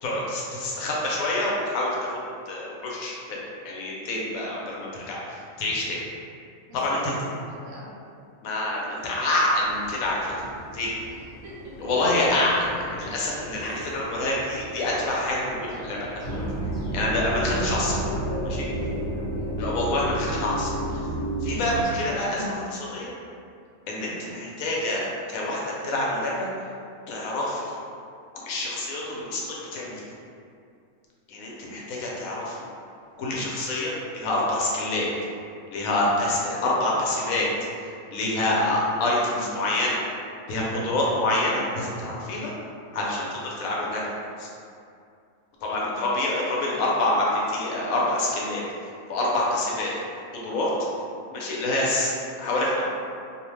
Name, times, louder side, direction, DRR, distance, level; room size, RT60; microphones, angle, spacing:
voice 1, 0.0-3.4 3.6-6.0 6.7-7.1 8.4-10.9 11.8-16.4 16.9-18.0 18.4-18.7 19.6-21.1 21.4-23.1 23.9-26.5 27.1-27.8 28.4-30.0 31.3-32.6 33.2-35.1 35.7-37.5 37.8-40.0 40.5-42.5 42.9-44.0 44.4-44.5 45.6-49.9 50.3-50.7 51.3-52.1 52.4-52.9, left 1 dB, 75° left, -4 dB, 1.0 m, -27 dB
voice 2, 6.7-8.0 11.1-11.8 18.8-19.5 38.2-38.5 45.9-46.2, right 1 dB, 70° right, -6 dB, 1.0 m, -44 dB
sound 1, 9.6-19.1, equal, 20° right, 0.9 m, -44 dB
sound 2, 16.2-21.8, right 1 dB, 50° left, 0.9 m, -29 dB
2.6 x 2.1 x 3.1 m, 2.4 s
omnidirectional pair, 1.5 m